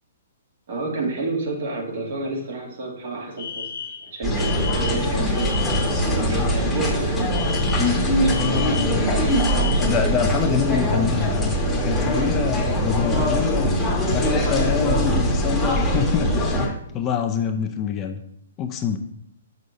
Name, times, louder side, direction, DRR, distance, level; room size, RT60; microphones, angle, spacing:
voice 1, 0.7-3.7 4.1-7.7 8.0-8.6, right 2 dB, 65° right, -2 dB, 2.4 m, -30 dB
Alarm, 3.4-6.1 7.3-10.0, left 7 dB, 60° left, 1.0 m, -33 dB
sound 1, 4.2-16.7, equal, 5° left, 1.1 m, -22 dB
voice 2, 8.2-9.1 9.8-13.8 14.1-18.2 18.6-19.0, left 7 dB, 25° left, 5 dB, 0.6 m, -26 dB
7.3 x 6.3 x 2.7 m, 0.71 s
hypercardioid pair, 150°, 0 cm